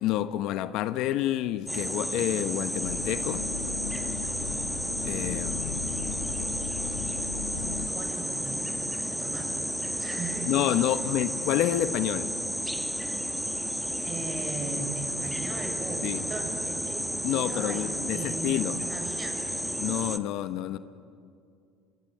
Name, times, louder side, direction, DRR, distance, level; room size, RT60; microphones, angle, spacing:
voice 1, 0.0-3.5 5.0-6.4 10.5-12.3 16.0-16.2 17.2-18.8 19.8-20.8, left 13 dB, 65° left, 1.0 m, -29 dB
sound 1, 1.7-20.2, equal, ahead, 1.2 m, -32 dB
sound 2, 2.7-7.9, left 9 dB, 85° left, 1.2 m, -37 dB
voice 2, 7.6-9.6 9.9-10.5 10.9-11.0 14.0-18.6 18.9-19.5, right 3 dB, 35° right, 6.5 m, -39 dB
26.5 x 22.0 x 9.7 m
supercardioid pair, 85°, 0 cm